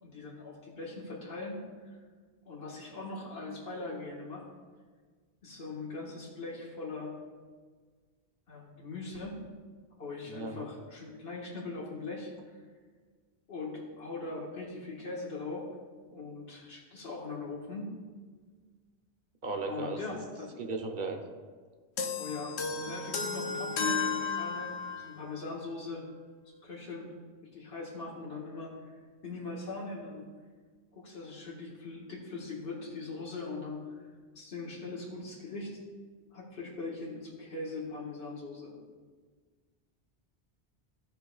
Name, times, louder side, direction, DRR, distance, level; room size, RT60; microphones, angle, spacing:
voice 1, 0.0-1.6 2.5-4.5 5.4-7.2 8.5-9.4 10.0-12.3 13.5-15.7 16.1-17.9 19.7-20.5 22.2-26.1 26.6-27.1 27.5-28.7 29.2-30.3 30.9-34.0 34.3-35.8 36.3-38.7, left 3 dB, 65° left, -5 dB, 1.9 m, -40 dB
voice 2, 10.3-10.7 19.4-20.0 20.6-21.2, right 3 dB, 50° right, 3 dB, 1.0 m, -35 dB
sound 1, 22.0-25.2, left 5 dB, 90° left, 1.0 m, -33 dB
16.5 x 5.5 x 2.4 m, 1.5 s
omnidirectional pair, 1.1 m